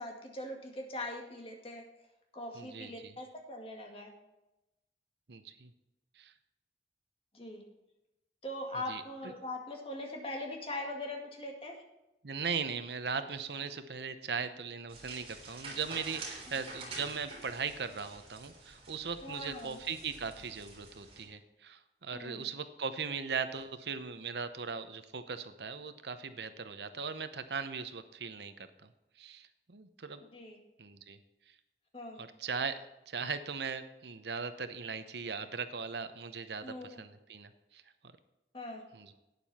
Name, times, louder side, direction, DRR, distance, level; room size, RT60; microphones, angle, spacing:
voice 1, 0.0-1.8 2.3-4.1 7.3-7.6 8.4-11.8 16.5-16.6 19.2-19.8 22.1-22.5 30.3-30.6 31.9-32.2 36.6-36.9 38.5-38.8, left 1 dB, 30° left, 1 dB, 2.1 m, -41 dB
voice 2, 2.6-3.1 5.3-5.7 6.2-6.3 8.9-9.3 12.2-28.9 29.2-30.2 30.8-31.2 32.2-32.8 33.1-37.8 38.9-39.1, right 5 dB, 75° right, 10 dB, 0.8 m, -39 dB
sound 1, 14.9-21.2, right 2 dB, 35° right, 3.3 m, -48 dB
12.0 x 9.3 x 4.3 m, 0.94 s
head